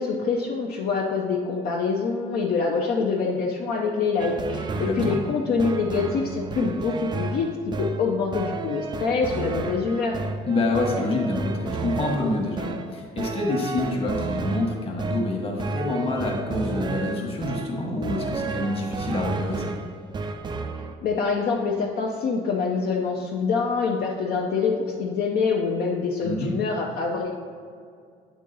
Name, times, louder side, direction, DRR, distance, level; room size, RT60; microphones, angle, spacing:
voice 1, 0.0-7.5 7.8-10.2 21.0-27.3, left 4 dB, 60° left, -1 dB, 0.6 m, -25 dB
sound 1, 4.2-21.0, right 4 dB, 25° right, 0.4 m, -32 dB
voice 2, 4.7-5.2 10.5-19.7 26.2-26.5, left 2 dB, 35° left, 0 dB, 1.2 m, -27 dB
8.2 x 3.7 x 3.9 m, 2.2 s
cardioid pair, 125°, 17 cm